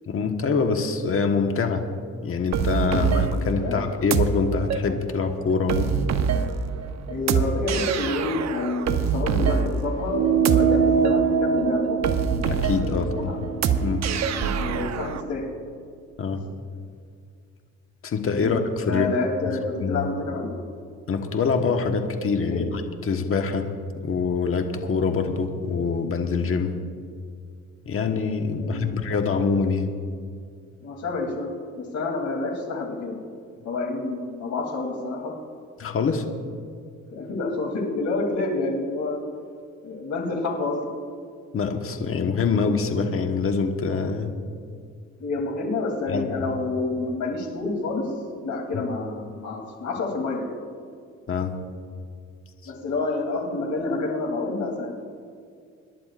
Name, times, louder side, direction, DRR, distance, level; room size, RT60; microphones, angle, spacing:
voice 1, 0.1-1.8 2.2-5.9 12.4-13.3 13.8-14.0 16.2-16.4 18.0-19.1 19.8-20.1 21.1-22.7 23.1-23.7 24.0-26.7 27.8-29.9 35.8-36.2 41.5-44.3 46.1-46.5 51.3-51.5, left 5 dB, 45° left, 5 dB, 1.3 m, -25 dB
sound 1, 2.5-15.2, right 6 dB, 60° right, 0.9 m, -26 dB
voice 2, 2.8-3.8 7.1-12.0 12.3-12.5 12.9-13.4 14.6-15.4 18.4-18.5 18.9-20.5 22.5-22.6 28.6-29.1 30.8-31.5 31.8-35.3 37.1-39.2 39.8-40.9 45.2-48.1 48.4-50.5 52.6-55.0, left 3 dB, 70° left, 0 dB, 3.1 m, -28 dB
sound 2, 10.1-14.9, right 6 dB, 90° right, 1.1 m, -24 dB
26.5 x 11.5 x 2.5 m, 2.2 s
cardioid pair, 90°, 30 cm